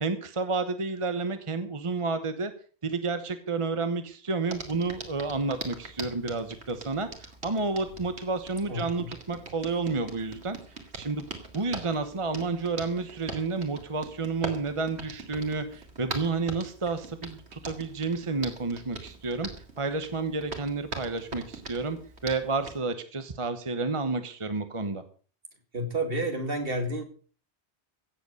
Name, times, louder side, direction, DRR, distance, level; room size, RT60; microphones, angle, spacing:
voice 1, 0.0-2.5 2.8-10.6 11.0-11.2 11.5-19.5 19.8-22.0 22.2-25.0, right 3 dB, 30° right, 9 dB, 1.1 m, -30 dB
Hands, 4.5-22.8, right 3 dB, 90° right, 2.7 m, -42 dB
voice 2, 8.7-9.1 25.7-27.0, right 1 dB, 60° right, 6 dB, 2.6 m, -30 dB
16.0 x 8.1 x 6.6 m, 0.41 s
omnidirectional pair, 1.1 m